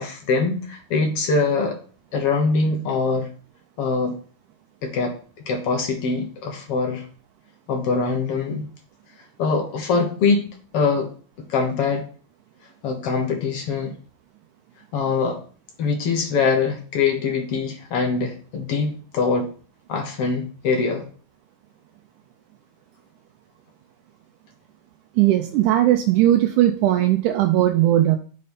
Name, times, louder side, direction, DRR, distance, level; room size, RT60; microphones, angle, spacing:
voice 1, 0.0-1.8 2.1-3.3 3.8-4.2 4.8-5.1 5.5-7.1 7.7-8.6 9.4-10.4 10.7-11.1 11.5-12.1 12.8-13.9 14.9-15.4 15.8-19.5 19.9-21.0, left 4 dB, 60° left, 3 dB, 1.7 m, -23 dB
voice 2, 25.2-28.2, right 13 dB, 80° right, 5 dB, 2.0 m, -18 dB
6.3 x 4.4 x 5.2 m, 0.42 s
omnidirectional pair, 3.8 m